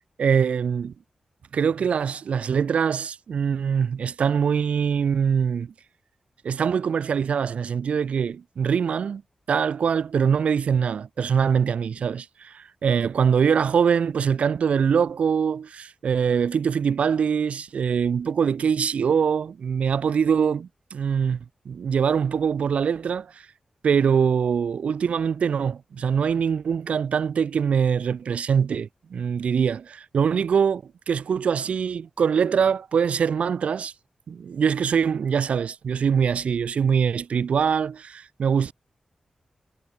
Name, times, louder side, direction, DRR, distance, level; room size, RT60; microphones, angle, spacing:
voice 1, 0.2-0.9 1.5-5.7 6.4-9.2 9.5-23.4 23.8-33.9 34.3-38.7, right 7 dB, 75° right, 0.4 m, -23 dB
wide cardioid pair, 95°, 2 cm